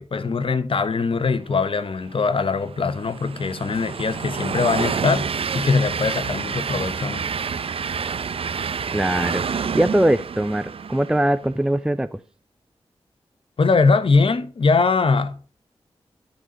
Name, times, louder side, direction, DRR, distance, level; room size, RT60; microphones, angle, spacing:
voice 1, 0.0-5.3 5.5-7.2 13.6-15.5, left 4 dB, 60° left, 1.0 m, -21 dB
Train, 2.0-11.5, right 6 dB, 65° right, 0.5 m, -28 dB
voice 2, 8.9-9.4 9.7-12.2, right 1 dB, 5° right, 0.5 m, -21 dB
10.5 x 4.1 x 5.8 m
cardioid pair, 40°, 10 cm